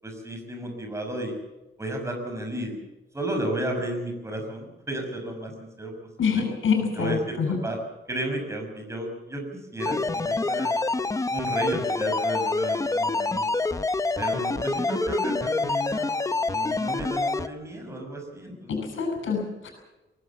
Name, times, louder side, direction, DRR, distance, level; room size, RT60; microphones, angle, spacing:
voice 1, 0.0-1.3 1.8-2.8 3.1-5.9 6.3-6.4 7.0-7.8 8.1-10.8 11.3-13.5 14.2-16.2 16.5-18.7, right 1 dB, 15° right, 3 dB, 6.0 m, -33 dB
voice 2, 6.2-7.6 18.7-19.7, left 5 dB, 80° left, 4 dB, 7.7 m, -26 dB
sound 1, 9.8-17.5, left 3 dB, 15° left, 0.9 m, -26 dB
24.0 x 19.5 x 7.2 m, 1.1 s
wide cardioid pair, 170°, 20 cm